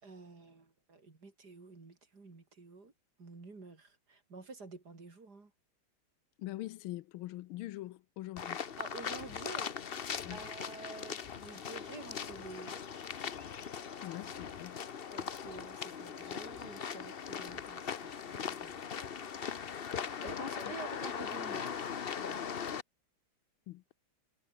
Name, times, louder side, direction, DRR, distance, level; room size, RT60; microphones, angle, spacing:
voice 1, 0.0-2.9 3.2-5.5 8.8-12.9 15.1-18.7 20.2-22.5, right 3 dB, 50° right, 4.2 m, -50 dB
voice 2, 6.4-8.6 10.2-10.4 14.0-14.8 15.3-15.5 20.4-20.5 23.7-23.9, left 16 dB, 80° left, 1.5 m, -43 dB
sound 1, 8.4-22.8, left 7 dB, 50° left, 0.6 m, -40 dB
omnidirectional pair, 2.2 m